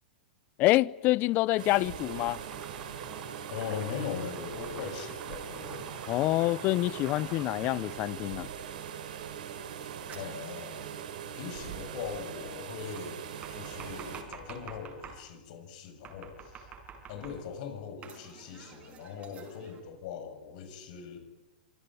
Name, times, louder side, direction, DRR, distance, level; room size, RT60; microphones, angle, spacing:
voice 1, 0.6-2.4 6.1-8.5, left 18 dB, 40° left, 0.7 m, -26 dB
sound 1, 1.6-14.2, right 8 dB, 70° right, 4.2 m, -41 dB
Domestic sounds home sounds, 2.0-8.4 10.1-11.2 13.0-15.2 16.0-17.6 18.0-19.8, right 5 dB, 25° right, 5.8 m, -48 dB
voice 2, 3.5-5.9 10.1-10.8 11.3-13.2 13.5-16.7 17.1-21.2, left 6 dB, 55° left, 6.9 m, -40 dB
26.0 x 17.5 x 9.7 m
hypercardioid pair, 120°, 5 cm